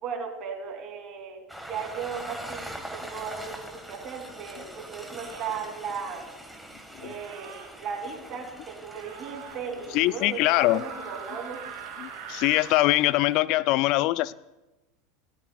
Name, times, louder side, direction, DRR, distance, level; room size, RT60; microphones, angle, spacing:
voice 1, 0.0-1.4 1.7-6.3 7.0-11.6, right 6 dB, 45° right, 2 dB, 2.8 m, -36 dB
Train, 1.5-13.4, right 1 dB, ahead, 1.5 m, -43 dB
sound 1, 3.7-3.9 5.1-5.6 7.0-7.7 8.9-9.6 10.4-12.8, right 8 dB, 65° right, 2.1 m, -43 dB
voice 2, 9.9-10.8 12.0-14.3, left 18 dB, 60° left, 19 dB, 0.4 m, -23 dB
17.5 x 12.0 x 2.3 m, 1.0 s
hypercardioid pair, 105°, 0 cm